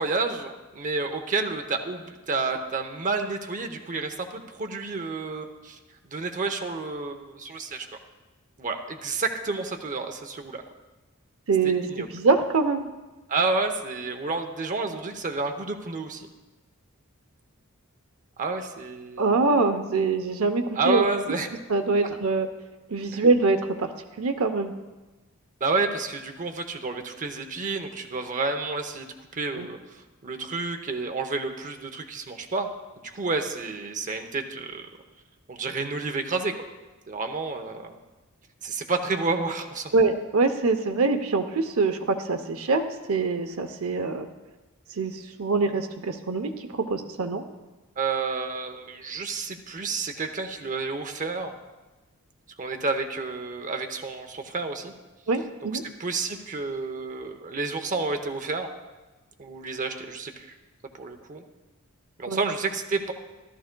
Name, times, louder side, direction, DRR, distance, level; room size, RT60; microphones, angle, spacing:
voice 1, 0.0-5.8 6.1-7.9 8.6-10.6 11.6-12.1 13.3-16.3 18.4-19.3 20.8-21.5 23.1-23.2 25.6-29.1 29.3-32.7 33.0-34.9 35.5-36.5 37.1-38.0 38.6-39.9 48.0-51.6 52.6-54.9 55.8-58.7 59.4-60.5 60.9-61.4 62.2-63.1, right 3 dB, 35° right, 5 dB, 0.7 m, -30 dB
voice 2, 11.5-12.9 19.2-21.0 21.7-22.5 22.9-23.9 24.2-24.7 29.6-29.7 39.9-44.3 45.0-47.4 55.3-55.8 62.3-62.4, right 3 dB, 80° right, 8 dB, 0.7 m, -24 dB
14.0 x 13.0 x 2.2 m, 1.2 s
head